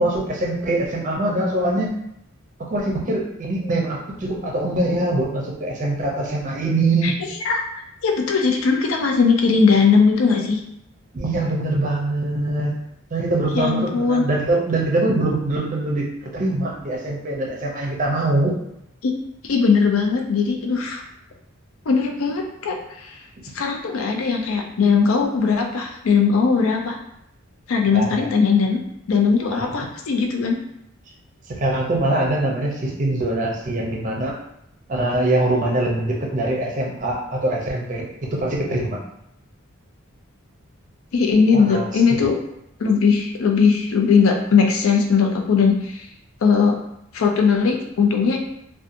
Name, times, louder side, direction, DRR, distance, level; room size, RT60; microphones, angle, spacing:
voice 1, 0.0-1.9 2.6-7.2 11.1-12.7 13.1-16.1 16.3-18.6 27.9-28.3 29.5-29.7 31.5-34.3 34.9-39.0 41.5-41.8 42.1-42.2, right 2 dB, 35° right, -2 dB, 0.5 m, -23 dB
voice 2, 8.0-10.6 13.6-14.2 19.0-19.1 19.4-21.0 21.9-23.2 23.5-27.0 27.7-28.8 29.1-30.6 41.1-42.4 42.8-46.1 46.4-46.8 47.1-48.4, left 5 dB, 75° left, 2 dB, 0.4 m, -19 dB
2.7 x 2.2 x 2.5 m, 0.77 s
head